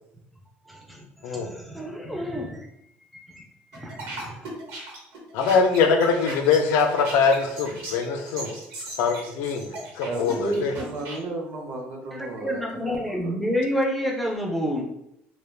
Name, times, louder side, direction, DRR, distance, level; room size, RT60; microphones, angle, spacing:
voice 1, 0.7-2.6 3.3-3.4 3.7-4.5 12.1-14.8, equal, ahead, -2 dB, 0.3 m, -29 dB
sound 1, 3.7-11.2, right 2 dB, 85° right, 1.0 m, -37 dB
voice 2, 5.3-8.5 9.0-10.7, left 5 dB, 80° left, 5 dB, 0.4 m, -23 dB
voice 3, 10.0-13.3, right 2 dB, 55° right, 1 dB, 0.6 m, -33 dB
2.3 x 2.1 x 3.2 m, 0.79 s
cardioid pair, 175°, 4 cm